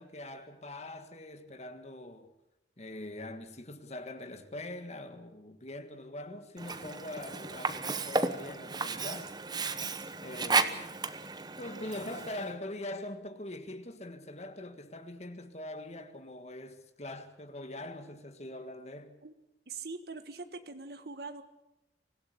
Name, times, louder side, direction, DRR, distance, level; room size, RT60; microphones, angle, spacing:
voice 1, 0.0-2.3 2.8-9.4 10.2-11.0 11.6-19.1, left 1 dB, 35° left, 1.7 m, -43 dB
Sink (filling or washing), 6.6-12.5, right 3 dB, 25° right, 1.1 m, -33 dB
voice 2, 19.7-21.4, right 4 dB, 60° right, 1.5 m, -42 dB
25.0 x 16.0 x 8.5 m
head